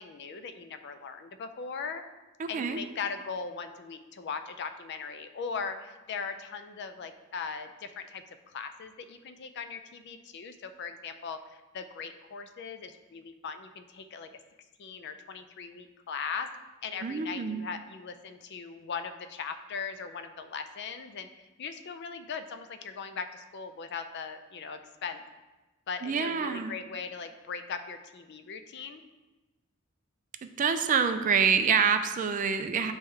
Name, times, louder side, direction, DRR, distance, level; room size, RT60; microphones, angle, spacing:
voice 1, 0.0-2.0 2.5-14.3 14.8-16.5 16.8-25.2 25.9-29.0, left 5 dB, 50° left, 9 dB, 0.4 m, -39 dB
voice 2, 2.4-2.8 17.0-17.6 26.0-26.8 30.6-32.9, right 6 dB, 35° right, 8 dB, 0.3 m, -26 dB
8.1 x 3.5 x 3.3 m, 1.2 s
head